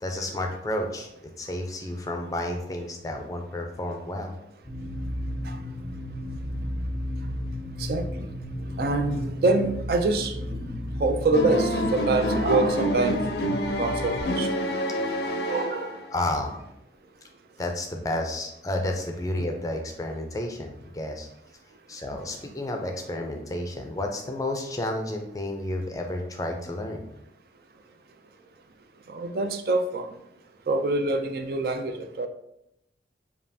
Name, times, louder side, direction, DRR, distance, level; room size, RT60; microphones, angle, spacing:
voice 1, 0.0-4.3 16.1-16.5 17.6-21.3 21.9-27.0, left 1 dB, 20° left, 3 dB, 0.4 m, -31 dB
sound 1, 4.6-14.2, left 1 dB, 10° right, 0.9 m, -34 dB
voice 2, 7.8-8.3 8.8-10.4 11.0-13.2 13.7-14.5 15.5-15.9 29.1-30.1 30.7-32.3, right 3 dB, 55° right, 6 dB, 0.3 m, -25 dB
sound 2, 10.0-12.6 13.6-15.4 16.4-16.7, equal, 85° right, 1.4 m, -45 dB
sound 3, 11.3-16.2, equal, 75° left, 0.5 m, -28 dB
5.3 x 2.4 x 2.7 m, 0.80 s
head